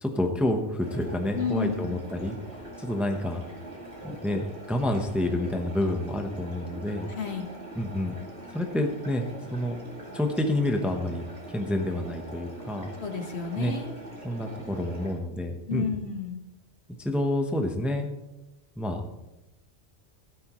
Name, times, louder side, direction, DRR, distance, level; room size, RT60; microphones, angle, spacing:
voice 1, 0.0-2.4 2.8-3.4 4.0-7.1 7.8-8.2 8.5-9.8 10.1-11.2 11.5-12.9 13.6-13.8 14.2-15.9 17.0-18.1 18.8-19.0, left 1 dB, ahead, 4 dB, 0.9 m, -28 dB
sound 1, 0.8-15.1, right 1 dB, 65° right, 2.8 m, -43 dB
voice 2, 1.3-2.0 7.1-7.5 13.0-14.0 15.7-16.4, left 5 dB, 65° left, 3 dB, 1.8 m, -31 dB
15.5 x 12.5 x 3.1 m, 0.95 s
omnidirectional pair, 1.2 m